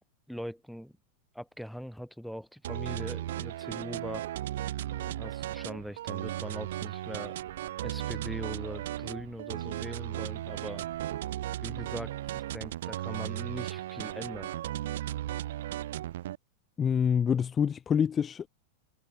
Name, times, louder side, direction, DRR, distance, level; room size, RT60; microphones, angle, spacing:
voice 1, 0.3-0.9 1.3-4.3 4.9-7.4 7.8-10.8 11.6-14.5, equal, ahead, 3.8 m, -41 dB
sound 1, 2.6-16.4, right 13 dB, 55° right, 1.5 m, -36 dB
voice 2, 16.8-18.5, left 7 dB, 20° left, 1.6 m, -26 dB
figure-of-eight pair, 90°, 0 cm